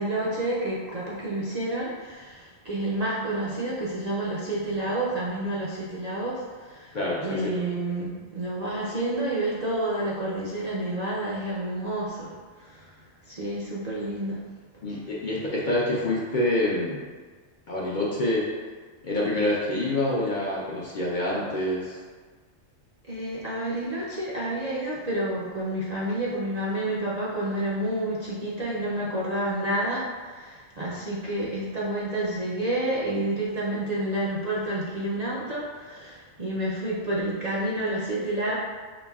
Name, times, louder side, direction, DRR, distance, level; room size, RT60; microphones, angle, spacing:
voice 1, 0.0-14.4 15.4-15.5 23.1-38.5, right 1 dB, 45° right, -7 dB, 0.6 m, -29 dB
voice 2, 6.9-7.5 14.8-17.0 17.7-18.5 19.0-22.0, left 1 dB, 50° left, -5 dB, 0.6 m, -26 dB
5.1 x 3.1 x 2.3 m, 1.5 s
omnidirectional pair, 1.2 m